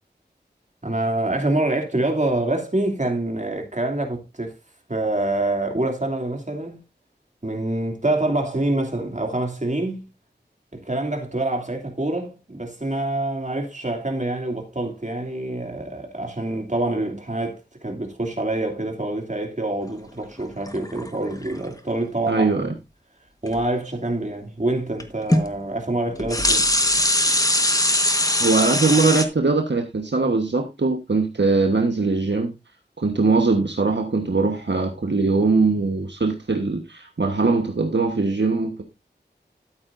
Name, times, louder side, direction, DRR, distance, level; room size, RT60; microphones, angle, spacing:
voice 1, 0.8-4.6 4.9-6.8 7.4-10.0 10.7-22.6 23.4-26.7, right 2 dB, 40° right, 2.7 m, -26 dB
sound 1, 20.6-21.7 23.5-23.6 25.0-25.1 25.3-25.5 26.1-29.2, left 1 dB, 20° left, 1.3 m, -21 dB
voice 2, 22.3-22.7 28.4-32.5 33.0-38.8, right 3 dB, 75° right, 1.3 m, -21 dB
13.0 x 8.8 x 2.6 m
wide cardioid pair, 45°, 19 cm